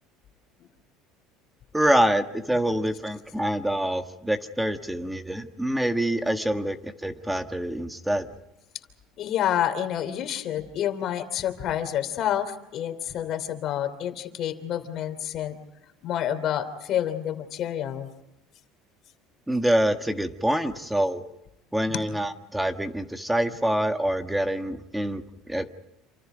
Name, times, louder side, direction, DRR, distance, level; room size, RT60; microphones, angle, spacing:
voice 1, 1.7-8.3 19.5-21.2 21.7-25.7, right 1 dB, 5° right, 7 dB, 1.6 m, -26 dB
voice 2, 9.2-15.6 16.0-18.1 21.9-22.0, left 10 dB, 45° left, 9 dB, 3.1 m, -28 dB
28.5 x 27.0 x 5.1 m, 0.88 s
cardioid pair, 140°, 0 cm